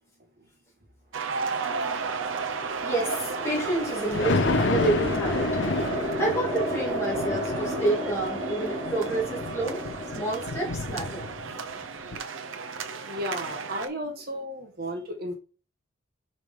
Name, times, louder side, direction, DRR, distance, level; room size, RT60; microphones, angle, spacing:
sound 1, 1.1-13.9, right 5 dB, 85° right, 0.7 m, -34 dB
sound 2, 1.6-12.0, equal, 35° right, 2.7 m, -34 dB
voice 1, 2.8-5.5 6.2-9.8 10.1-11.3 13.0-13.1, right 2 dB, 15° left, 2.5 m, -29 dB
Thunder, 3.4-11.7 12.1-12.2, left 3 dB, 70° left, 0.6 m, -31 dB
voice 2, 13.1-15.3, equal, 50° right, 1.4 m, -34 dB
5.1 x 4.6 x 5.3 m
head